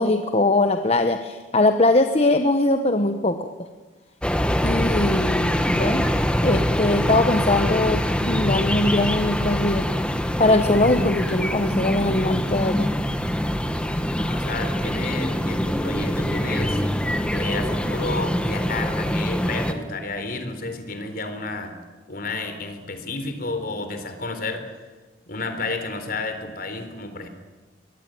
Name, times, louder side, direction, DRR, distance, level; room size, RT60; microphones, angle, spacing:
voice 1, 0.0-3.5 4.6-6.1 6.4-9.8 10.4-12.9, left 2 dB, 35° left, 7 dB, 1.1 m, -21 dB
sound 1, 4.2-19.7, equal, 5° left, 1.6 m, -24 dB
voice 2, 14.2-16.8 17.3-21.8 22.1-24.6 25.3-27.3, left 3 dB, 55° left, 8 dB, 3.8 m, -31 dB
22.5 x 21.5 x 9.3 m, 1.3 s
head